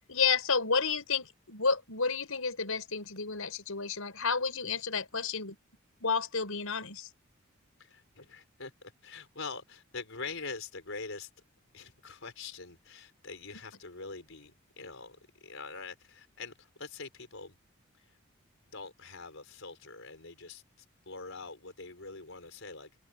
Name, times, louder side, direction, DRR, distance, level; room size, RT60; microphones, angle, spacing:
voice 1, 0.1-5.6 6.0-7.1, left 5 dB, 90° left, 5.7 m, -31 dB
voice 2, 7.8-11.3 11.7-17.5 18.0-18.2 18.7-22.9, left 4 dB, 70° left, 4.4 m, -44 dB
head